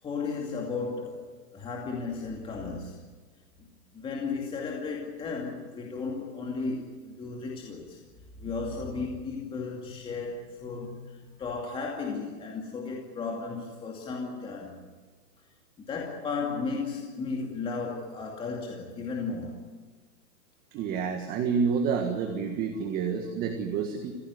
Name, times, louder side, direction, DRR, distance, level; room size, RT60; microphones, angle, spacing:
voice 1, 0.0-3.0 3.6-8.0 8.4-14.8 15.8-19.6, left 4 dB, 10° left, 2.5 m, -35 dB
voice 2, 20.7-24.1, right 6 dB, 20° right, 1.7 m, -29 dB
25.5 x 17.0 x 9.7 m
hypercardioid pair, 160°, 45 cm